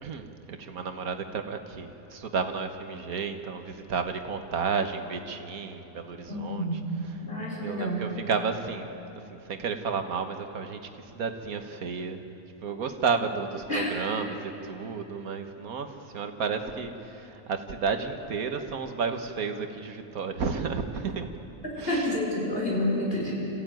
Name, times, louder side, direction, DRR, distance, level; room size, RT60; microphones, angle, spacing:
voice 1, 0.0-7.2 7.6-9.0 9.3-12.3 12.6-21.3 21.8-22.2, right 5 dB, 75° right, 7 dB, 1.7 m, -32 dB
voice 2, 6.3-7.0 7.2-8.0 13.7-13.9 21.9-23.3, left 1 dB, 40° left, -3 dB, 5.3 m, -29 dB
26.0 x 15.5 x 9.1 m, 3.0 s
omnidirectional pair, 1.5 m